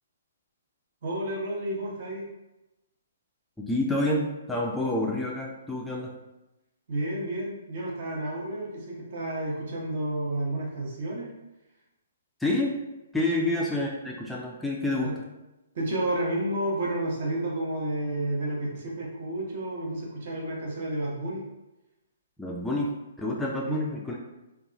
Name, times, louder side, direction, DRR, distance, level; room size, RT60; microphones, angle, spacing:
voice 1, 1.0-2.2 6.9-11.3 13.4-13.5 15.0-15.2 15.7-21.4 23.7-23.9, right 1 dB, 55° right, -3 dB, 0.8 m, -31 dB
voice 2, 3.6-6.1 12.4-12.8 13.1-15.1 22.4-22.9 23.2-24.2, left 1 dB, 5° left, -3 dB, 0.3 m, -28 dB
2.7 x 2.3 x 2.5 m, 0.98 s
figure-of-eight pair, 125°, 0 cm